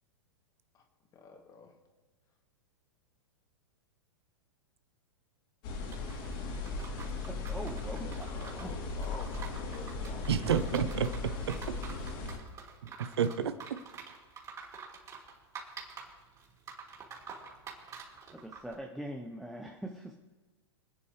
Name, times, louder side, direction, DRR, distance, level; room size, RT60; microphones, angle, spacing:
voice 1, 1.1-1.7 8.0-10.3, left 4 dB, 25° left, 3 dB, 2.4 m, -48 dB
sound 1, 5.6-12.4, left 3 dB, 50° left, 3.2 m, -37 dB
sound 2, 5.9-18.7, right 5 dB, 25° right, 3.7 m, -48 dB
voice 2, 7.3-8.3 8.6-8.7 12.8-13.0 18.3-20.1, right 1 dB, ahead, 3 dB, 0.9 m, -42 dB
voice 3, 10.3-11.6 13.0-13.8, right 8 dB, 70° right, 12 dB, 0.9 m, -30 dB
26.0 x 9.8 x 3.2 m, 1.2 s
figure-of-eight pair, 105°, 14 cm